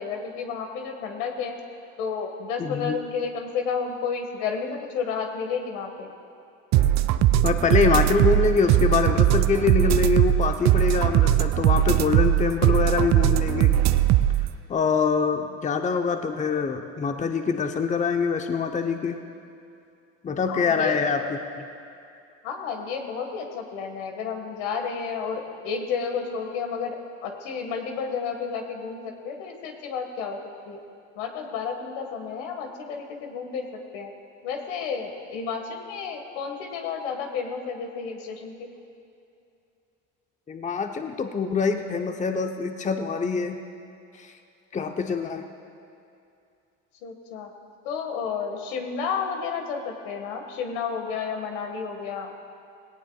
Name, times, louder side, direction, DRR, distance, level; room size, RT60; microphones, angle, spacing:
voice 1, 0.0-1.6 2.0-6.1 20.5-21.0 22.4-30.4 30.7-30.8 31.2-34.1 34.4-38.5 47.0-47.5 47.8-52.4, left 6 dB, 80° left, 3 dB, 1.8 m, -31 dB
voice 2, 2.6-3.0 7.4-13.7 14.7-19.2 20.2-21.7 40.5-43.6 44.2-44.3 44.7-45.4, left 5 dB, 20° left, 5 dB, 0.8 m, -25 dB
sound 1, 6.7-14.5, right 13 dB, 50° right, 0.6 m, -20 dB
17.5 x 17.5 x 2.4 m, 2.6 s
supercardioid pair, 90°, 35 cm